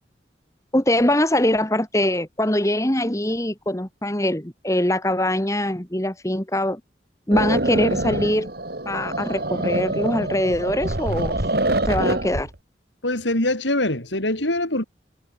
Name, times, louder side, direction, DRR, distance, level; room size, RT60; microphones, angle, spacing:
voice 1, 0.7-6.8 7.3-8.5 8.8-11.5 11.9-12.5, left 1 dB, 15° left, 1.7 m, -22 dB
sound 1, 7.3-12.5, right 1 dB, 55° right, 2.6 m, -25 dB
voice 2, 13.0-14.8, left 1 dB, 85° left, 7.5 m, -23 dB
head